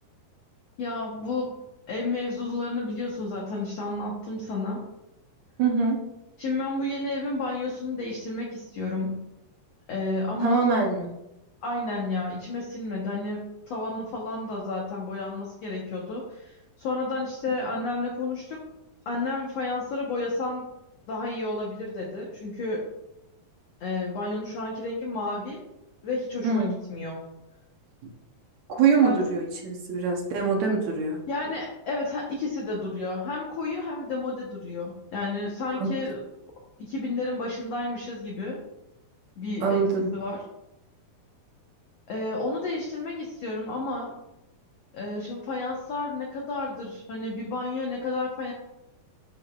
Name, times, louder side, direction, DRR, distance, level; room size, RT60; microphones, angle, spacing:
voice 1, 0.8-1.6 1.9-4.8 6.4-9.2 9.9-10.6 11.6-18.6 19.0-20.6 21.1-22.8 23.8-25.6 26.0-27.2 29.0-29.2 31.3-36.2 36.8-38.6 39.4-39.8 40.1-40.4 42.1-44.1 44.9-48.5, left 2 dB, 80° left, -2 dB, 1.4 m, -31 dB
voice 2, 5.6-6.0 10.4-11.1 26.4-26.8 28.7-31.2 35.7-35.9 39.6-40.1, right 4 dB, 85° right, 0 dB, 1.6 m, -24 dB
11.5 x 5.7 x 2.4 m, 0.92 s
omnidirectional pair, 4.5 m